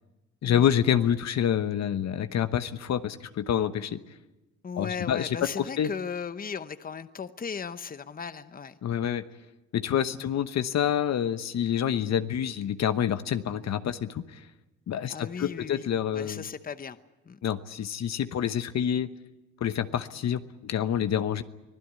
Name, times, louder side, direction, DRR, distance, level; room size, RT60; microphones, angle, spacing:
voice 1, 0.4-4.0 4.8-5.9 8.8-9.2 9.7-14.4 14.9-16.4 17.4-19.1 19.6-21.4, left 9 dB, 60° left, 11 dB, 1.1 m, -27 dB
voice 2, 4.6-8.7 10.2-10.3 15.1-15.9 16.1-17.0 17.2-17.4, left 6 dB, 30° left, 12 dB, 0.9 m, -36 dB
24.5 x 16.0 x 9.6 m, 1.0 s
cardioid pair, 90°, 30 cm